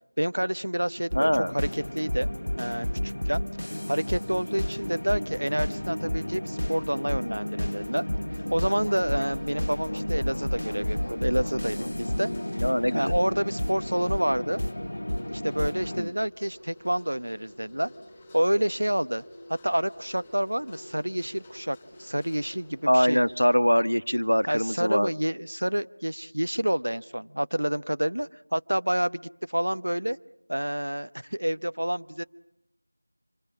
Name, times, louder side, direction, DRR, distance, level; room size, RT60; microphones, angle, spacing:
voice 1, 0.2-2.3 2.6-3.4 3.9-8.0 8.5-12.6 12.9-14.6 15.3-17.9 18.3-19.2 19.6-23.2 24.5-30.2 30.5-32.2, equal, 70° right, 14 dB, 1.0 m, -28 dB
voice 2, 1.1-1.5 12.6-13.1 16.0-16.1 22.9-25.1, equal, 90° left, 15 dB, 1.0 m, -23 dB
sound 1, 1.1-16.0, left 1 dB, 65° left, 1.0 m, -31 dB
sound 2, 6.7-23.4, left 1 dB, 10° left, 4.9 m, -51 dB
27.0 x 24.0 x 8.6 m, 0.84 s
figure-of-eight pair, 175°, 0 cm